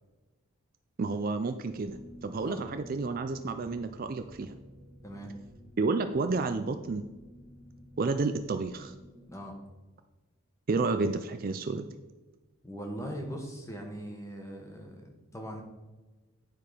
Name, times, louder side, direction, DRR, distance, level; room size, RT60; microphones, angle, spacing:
voice 1, 1.0-4.5 5.8-7.1 8.0-9.0 10.7-11.9, right 3 dB, 40° right, 8 dB, 0.4 m, -30 dB
sound 1, 1.7-9.4, equal, 30° left, 1.7 m, -51 dB
voice 2, 12.6-15.6, equal, 15° left, 1 dB, 1.2 m, -40 dB
9.4 x 4.7 x 5.0 m, 1.2 s
head